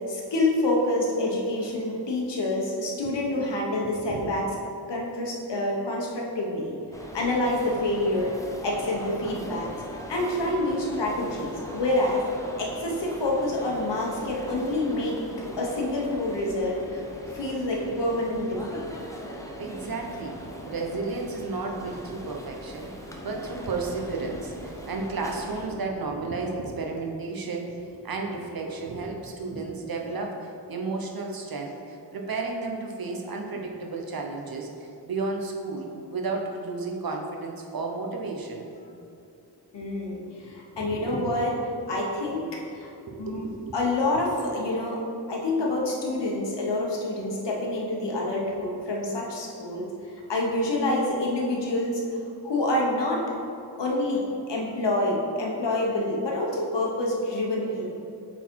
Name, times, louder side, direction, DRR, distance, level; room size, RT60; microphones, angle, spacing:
voice 1, 0.1-4.5 4.9-6.7 7.1-8.4 8.6-9.7 10.1-12.2 12.6-15.2 15.6-17.0 17.3-18.9 28.3-28.4 30.1-30.4 33.5-33.7 38.8-39.0 39.7-41.6 41.9-42.9 43.2-43.5 43.7-45.0 45.3-49.9 50.3-52.0 52.4-53.3 53.8-58.0, left 1 dB, 90° left, -2 dB, 1.3 m, -27 dB
voice 2, 3.8-4.4 19.6-38.6 40.7-41.4 43.1-43.7, right 3 dB, 55° right, 1 dB, 0.9 m, -33 dB
sound 1, 6.9-25.7, equal, 10° left, 0.7 m, -40 dB
7.7 x 4.1 x 4.6 m, 2.6 s
wide cardioid pair, 140°, 41 cm